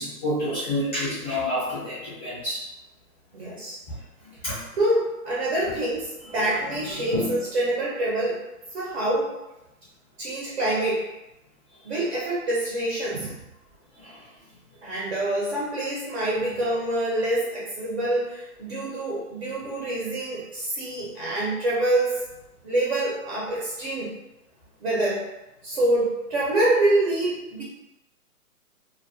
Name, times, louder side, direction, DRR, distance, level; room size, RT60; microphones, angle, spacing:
voice 1, 0.0-2.6 3.9-4.0 4.4-4.6 7.0-7.3 14.0-14.1, left 1 dB, 10° left, -13 dB, 0.5 m, -28 dB
voice 2, 3.3-3.8 4.8-8.4 8.7-9.3 10.2-11.1 11.8-13.4 14.8-22.2 22.6-24.2 24.8-25.3 25.6-27.6, right 1 dB, 45° right, -5 dB, 0.6 m, -26 dB
2.3 x 2.2 x 2.5 m, 0.96 s
hypercardioid pair, 155°, 45 cm